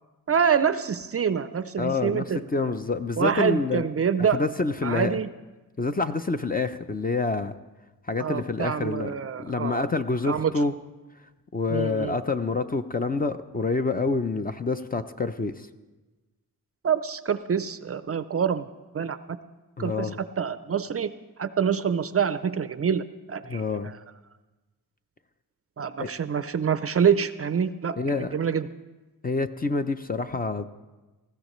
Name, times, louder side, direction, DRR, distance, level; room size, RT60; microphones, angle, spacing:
voice 1, 0.3-2.5 3.2-4.4 4.8-5.3 8.2-9.8 10.3-10.5 11.7-12.2 16.8-18.7 18.9-19.2 19.8-20.1 20.4-21.1 21.4-24.0 25.8-28.7, right 7 dB, 40° right, 13 dB, 0.4 m, -26 dB
voice 2, 1.8-3.8 4.3-5.2 5.8-7.5 8.1-10.7 11.5-15.7 19.8-20.2 23.5-23.9 26.0-26.1 28.0-28.3 29.2-30.6, left 3 dB, 25° left, 9 dB, 0.4 m, -27 dB
20.0 x 15.0 x 3.1 m, 1.2 s
wide cardioid pair, 130°, 37 cm